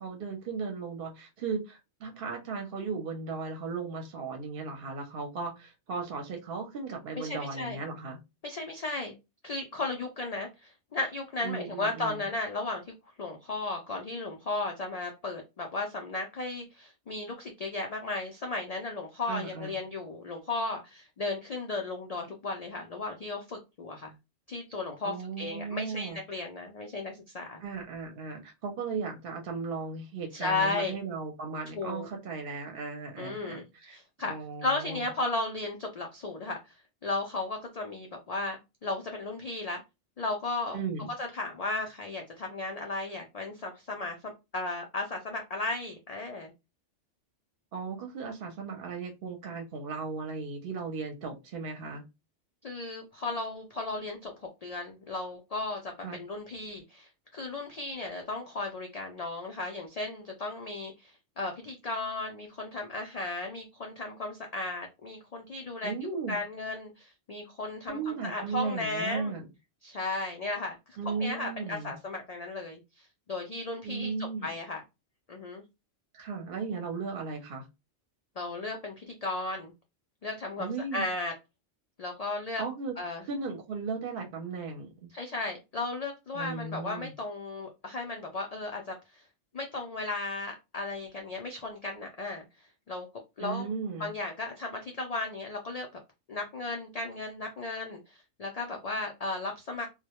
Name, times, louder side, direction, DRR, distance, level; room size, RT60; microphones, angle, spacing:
voice 1, 0.0-8.2 11.4-12.3 19.3-19.8 25.0-26.4 27.6-34.0 34.2-35.1 40.7-41.1 47.7-52.0 56.0-56.2 65.8-66.4 67.9-69.5 71.0-72.0 73.8-74.6 76.1-77.7 80.6-81.0 82.6-83.0 83.3-85.1 86.3-87.1 93.4-94.1, right 4 dB, 55° right, 0.7 m, -36 dB
voice 2, 7.2-7.8 8.4-9.1 9.4-12.8 13.2-24.2 24.5-27.6 30.3-30.9 31.7-32.1 33.2-34.3 34.6-36.6 37.0-39.8 40.2-40.8 41.2-46.5 52.6-54.3 54.6-65.9 66.3-69.3 69.8-70.8 71.0-74.8 75.3-75.6 78.4-79.7 80.2-81.3 82.0-82.6 83.0-83.2 85.1-89.2 89.5-92.4 92.9-93.1 93.4-93.7 94.0-95.9 96.3-99.9, left 2 dB, 90° left, 0.3 m, -35 dB
2.1 x 2.1 x 2.8 m
omnidirectional pair, 1.2 m